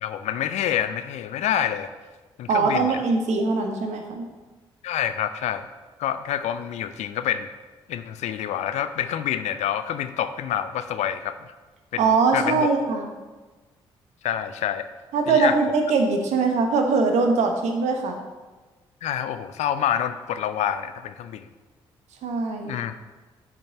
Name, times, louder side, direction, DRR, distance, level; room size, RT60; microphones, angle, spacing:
voice 1, 0.0-1.9 2.4-3.0 4.8-5.7 6.0-7.5 7.9-11.4 11.9-12.7 14.2-14.9 15.3-15.6 19.0-21.5 22.7-23.0, left 10 dB, 65° left, 11 dB, 0.5 m, -27 dB
voice 2, 2.5-4.2 12.0-13.0 15.1-18.2 22.2-22.8, right 4 dB, 65° right, 4 dB, 1.1 m, -22 dB
7.3 x 5.2 x 5.8 m, 1.3 s
hypercardioid pair, 40°, 13 cm